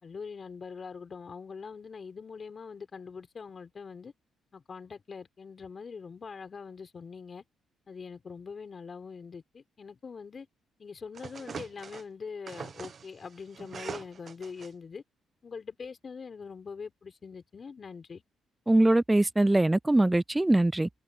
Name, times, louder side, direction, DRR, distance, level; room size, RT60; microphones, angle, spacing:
voice 1, 0.0-4.1 4.5-7.4 7.9-10.5 10.8-15.0 15.4-18.2, left 5 dB, 40° left, 4.3 m, -43 dB
sound 1, 11.1-12.0 12.5-14.7, right 6 dB, 45° right, 1.4 m, -42 dB
voice 2, 18.7-20.9, right 1 dB, 10° right, 0.4 m, -22 dB
cardioid pair, 90°, 0 cm